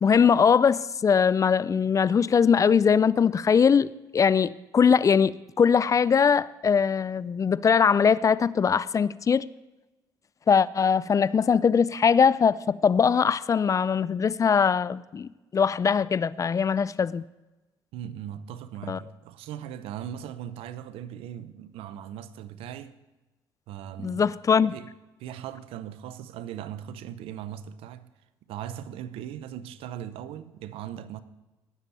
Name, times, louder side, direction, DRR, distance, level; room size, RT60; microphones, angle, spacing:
voice 1, 0.0-3.9 4.1-9.5 10.5-17.2 18.9-19.0 24.0-24.7, left 6 dB, 35° left, 0.4 m, -21 dB
voice 2, 17.9-22.9 23.7-24.3 24.7-24.9 25.2-28.1 28.5-31.2, right 10 dB, 80° right, 0.7 m, -39 dB
18.0 x 7.2 x 4.1 m
supercardioid pair, 70°, 10 cm